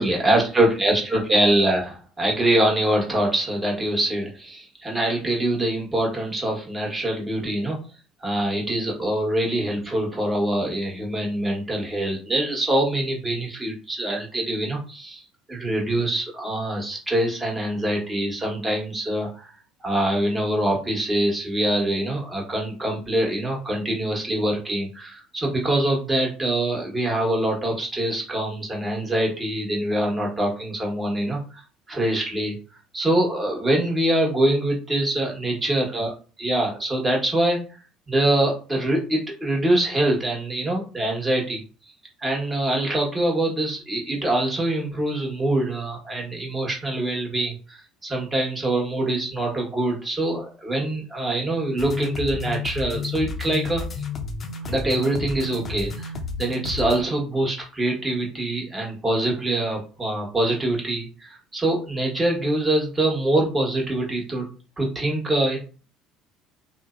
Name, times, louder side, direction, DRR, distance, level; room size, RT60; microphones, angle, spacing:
voice 1, 0.0-7.8 8.2-15.2 15.5-19.5 19.8-31.6 31.9-32.5 32.9-36.1 36.4-37.6 38.1-41.9 42.2-53.8 54.7-56.1 56.4-64.5 64.8-65.6, right 1 dB, 20° right, -1 dB, 1.1 m, -24 dB
sound 1, 51.8-57.0, left 4 dB, 40° left, 0.5 m, -31 dB
2.5 x 2.0 x 2.4 m, 0.36 s
supercardioid pair, 90°, 0 cm